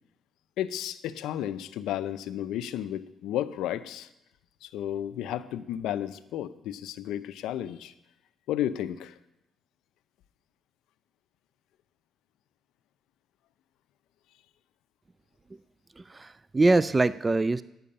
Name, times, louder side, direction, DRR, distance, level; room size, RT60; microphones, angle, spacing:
voice 1, 0.6-4.1 4.6-7.9 8.5-9.1, left 11 dB, 90° left, 13 dB, 0.5 m, -33 dB
voice 2, 16.0-17.6, right 2 dB, 25° right, 16 dB, 0.3 m, -24 dB
9.4 x 6.9 x 8.8 m, 0.87 s
cardioid pair, 90°, 0 cm